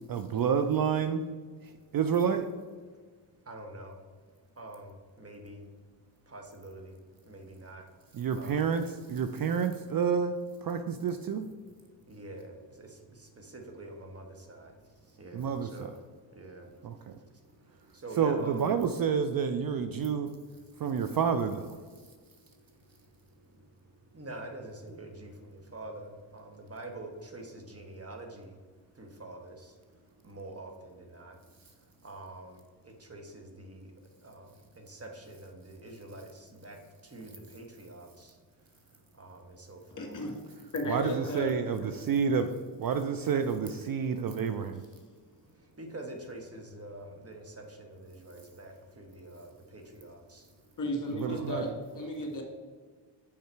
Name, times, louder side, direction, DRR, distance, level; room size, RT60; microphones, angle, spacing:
voice 1, 0.1-1.3 1.6-2.5 8.1-8.8 9.1-11.4 15.3-15.9 16.8-17.2 18.2-20.3 20.8-21.8 40.9-42.5 42.8-44.9 51.2-51.7, right 6 dB, 45° right, 8 dB, 0.5 m, -29 dB
voice 2, 3.5-3.9 4.6-4.9 5.2-5.6 6.3-6.9 7.3-7.8 8.3-8.7 12.1-12.9 13.4-14.7 15.2-15.9 16.4-16.6 18.0-18.7 24.1-28.5 29.0-29.7 30.2-31.4 32.0-32.6 33.0-33.9 34.2-34.5 34.8-36.8 37.1-38.3 39.2-40.1 41.1-41.4 45.8-50.4 51.2-51.5, right 2 dB, 30° right, 3 dB, 1.3 m, -45 dB
voice 3, 40.0-41.6 50.8-52.4, equal, 40° left, 2 dB, 1.8 m, -34 dB
5.5 x 5.0 x 4.5 m, 1.5 s
supercardioid pair, 55°, 48 cm